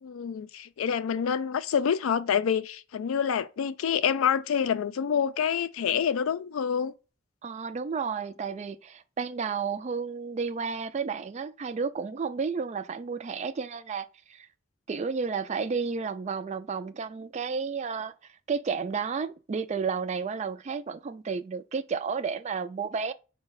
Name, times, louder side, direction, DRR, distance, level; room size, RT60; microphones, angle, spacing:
voice 1, 0.0-6.9, left 7 dB, 85° left, 0.4 m, -27 dB
voice 2, 7.4-14.5 14.9-23.1, right 5 dB, 35° right, 0.3 m, -32 dB
4.7 x 2.2 x 4.6 m
head